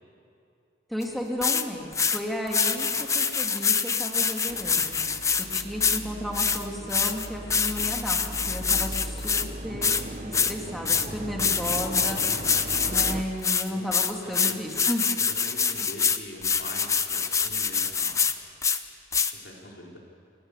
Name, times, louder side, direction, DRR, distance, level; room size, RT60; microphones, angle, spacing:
voice 1, 0.9-2.9 3.1-4.9 5.4-8.2 8.5-9.9 10.3-12.2 12.8-15.1, equal, ahead, -1 dB, 3.0 m, -33 dB
sound 1, 1.0-1.1 1.4-1.6 1.9-2.2 2.5-6.0 6.3-9.5 9.8-10.0 10.3-10.5 10.9-11.1 11.4-13.2 13.4-18.3 18.6-18.8 19.1-19.3, left 6 dB, 15° left, 0.7 m, -25 dB
sound 2, 4.5-13.2, right 1 dB, 40° right, 1.1 m, -38 dB
voice 2, 13.7-14.6 15.3-18.2 18.7-18.9 19.3-20.0, left 1 dB, 60° left, -1 dB, 4.4 m, -43 dB
28.5 x 18.0 x 8.5 m, 2.6 s
head